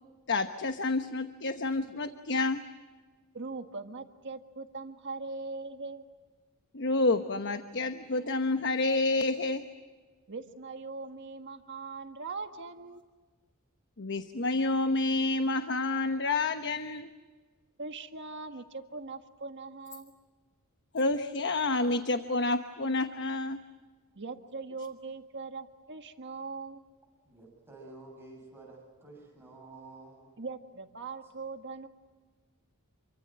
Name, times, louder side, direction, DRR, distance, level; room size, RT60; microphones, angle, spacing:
voice 1, 0.3-2.6 6.7-9.6 14.0-17.1 20.9-23.6, left 2 dB, 55° left, 8 dB, 1.1 m, -29 dB
voice 2, 3.3-6.0 10.3-13.0 17.8-20.1 24.1-26.8 30.4-31.9, right 3 dB, 55° right, 6 dB, 1.6 m, -41 dB
voice 3, 27.3-30.3, right 2 dB, 10° right, -2 dB, 7.6 m, -50 dB
27.5 x 24.5 x 7.7 m, 1.4 s
head